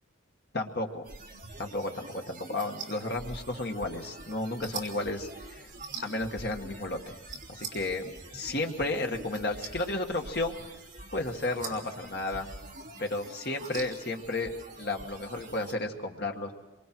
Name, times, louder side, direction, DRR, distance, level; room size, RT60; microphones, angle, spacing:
voice 1, 0.5-1.1 1.6-1.9 2.3-5.6 6.0-7.1 7.5-8.0 8.3-10.6 11.1-12.5 13.0-16.5, left 2 dB, 50° left, 3 dB, 1.8 m, -33 dB
sound 1, 1.0-15.7, right 3 dB, 40° right, 3.3 m, -44 dB
26.0 x 24.0 x 4.7 m, 1.1 s
head